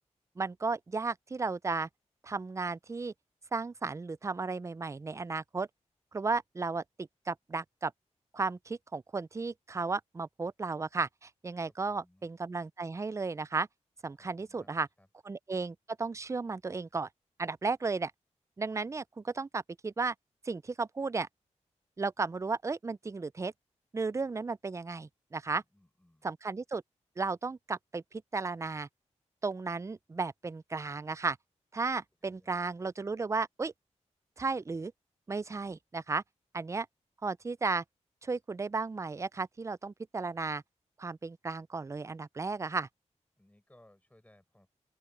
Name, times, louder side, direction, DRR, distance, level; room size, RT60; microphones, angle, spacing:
voice 1, 0.4-1.9 2.2-3.1 3.5-5.7 6.1-7.9 8.3-13.7 14.0-14.9 15.3-17.1 17.4-18.1 18.6-20.1 20.4-21.3 22.0-23.5 23.9-25.6 26.2-26.8 27.2-28.9 29.4-31.4 31.7-33.7 34.4-34.9 35.3-36.2 36.5-36.9 37.2-37.8 38.2-40.6 41.0-42.9, right 4 dB, 25° right, 0.4 m, -34 dB
voice 2, 11.6-12.3 14.1-15.1 25.5-26.3 32.2-32.7 43.4-44.7, left 1 dB, 10° left, 6.9 m, -64 dB
open air
wide cardioid pair, 80°, 12 cm